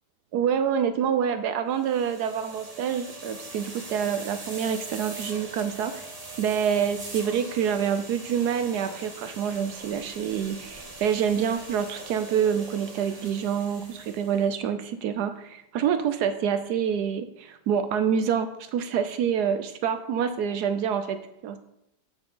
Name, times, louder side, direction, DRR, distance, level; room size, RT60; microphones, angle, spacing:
voice 1, 0.3-5.9 6.4-21.6, right 8 dB, 70° right, 10 dB, 1.0 m, -27 dB
sound 1, 1.8-14.5, right 2 dB, 25° right, 1.1 m, -42 dB
8.5 x 7.1 x 3.8 m, 0.83 s
omnidirectional pair, 2.0 m